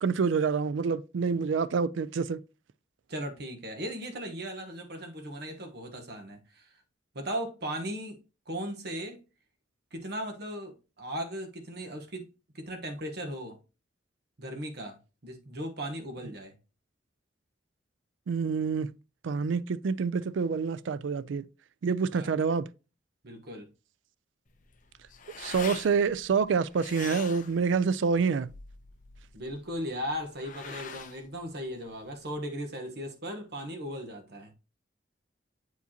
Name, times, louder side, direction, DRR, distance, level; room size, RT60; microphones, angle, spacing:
voice 1, 0.0-2.4 18.3-18.9 19.2-21.5 21.8-22.7 25.4-28.5, right 5 dB, 85° right, 0.4 m, -27 dB
voice 2, 3.1-6.7 7.1-9.2 9.9-12.3 12.5-13.6 14.4-15.0 15.2-16.5 22.1-22.3 23.2-23.7 29.3-34.5, equal, 60° right, 1.2 m, -37 dB
sound 1, 24.5-32.4, left 6 dB, 45° left, 0.7 m, -45 dB
8.1 x 4.7 x 2.9 m
head